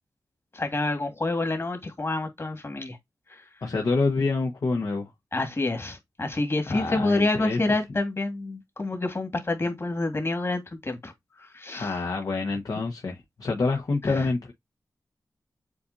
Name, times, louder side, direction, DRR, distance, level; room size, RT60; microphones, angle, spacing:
voice 1, 0.5-3.0 3.3-3.4 5.3-11.1 11.4-11.9 14.0-14.3, left 2 dB, 40° left, 2.1 m, -28 dB
voice 2, 3.6-5.1 6.7-7.6 11.7-14.5, left 3 dB, 70° left, 1.2 m, -27 dB
7.7 x 2.6 x 2.6 m
wide cardioid pair, 70°, 6 cm